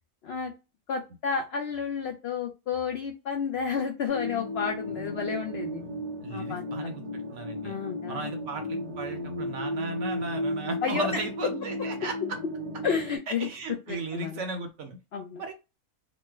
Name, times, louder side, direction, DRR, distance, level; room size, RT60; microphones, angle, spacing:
voice 1, 0.9-5.8 6.3-6.6 7.6-8.3 10.8-11.1 12.8-13.5 13.9-14.4 15.1-15.4, left 6 dB, 85° left, 3 dB, 0.5 m, -31 dB
sound 1, 4.1-13.2, left 1 dB, 35° right, 0.4 m, -34 dB
voice 2, 5.8-7.7 8.1-12.4 13.3-15.0 15.4-15.5, right 3 dB, 65° right, 5 dB, 0.8 m, -36 dB
3.1 x 2.1 x 3.2 m, 0.27 s
omnidirectional pair, 1.6 m